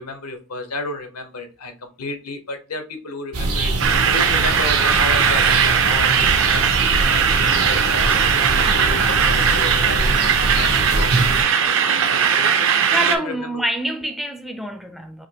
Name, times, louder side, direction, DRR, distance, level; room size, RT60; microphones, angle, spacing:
voice 1, 0.0-1.7 2.0-3.7 4.1-6.6 7.1-11.8 12.1-13.6, left 2 dB, 85° left, 0.9 m, -32 dB
sound 1, 3.3-11.4, right 2 dB, 80° right, 1.0 m, -23 dB
sound 2, 3.8-13.2, right 7 dB, 60° right, 0.6 m, -19 dB
voice 2, 12.9-15.3, right 1 dB, ahead, 0.4 m, -26 dB
4.9 x 2.8 x 2.8 m
head